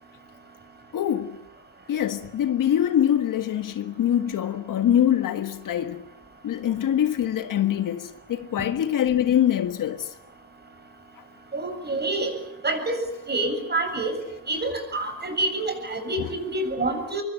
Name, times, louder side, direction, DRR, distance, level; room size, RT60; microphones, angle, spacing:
voice 1, 0.9-1.4 1.9-6.0 6.4-10.1 16.2-16.3, left 10 dB, 55° left, 1.6 m, -24 dB
voice 2, 11.5-12.3 12.6-13.0 13.3-14.1 14.5-17.2, right 2 dB, 25° right, 7.7 m, -27 dB
25.0 x 23.5 x 9.2 m
cardioid pair, 110°, 39 cm